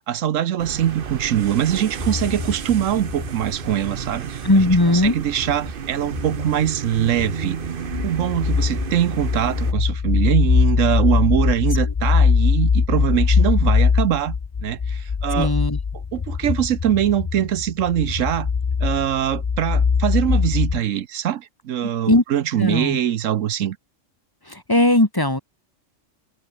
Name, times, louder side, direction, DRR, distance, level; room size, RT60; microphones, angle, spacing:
voice 1, 0.1-4.4 4.9-7.6 8.0-14.4 14.6-15.5 16.1-18.5 18.8-23.8, right 10 dB, 75° right, 1.1 m, -22 dB
sound 1, 0.6-9.7, right 7 dB, 45° right, 1.0 m, -32 dB
sound 2, 2.0-3.8 5.1-5.7 6.0-20.8, left 5 dB, 45° left, 0.3 m, -22 dB
voice 2, 4.4-5.2 11.9-12.0 15.3-15.8 21.8-22.2 22.6-23.0 24.5-25.4, left 1 dB, 15° left, 1.7 m, -18 dB
omnidirectional pair, 1.3 m